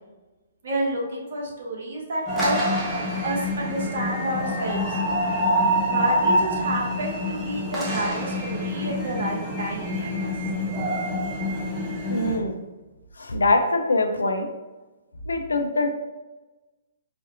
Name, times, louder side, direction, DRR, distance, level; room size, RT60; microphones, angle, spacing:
voice 1, 0.6-2.6 2.9-5.0 5.9-10.3, right 1 dB, 60° right, -3 dB, 1.1 m, -29 dB
sound 1, 2.3-12.4, equal, 5° right, 1.0 m, -26 dB
voice 2, 12.1-12.6 13.2-14.5 15.3-15.9, left 2 dB, 80° left, 6 dB, 0.5 m, -23 dB
4.2 x 2.7 x 2.5 m, 1.1 s
figure-of-eight pair, 125°, 0 cm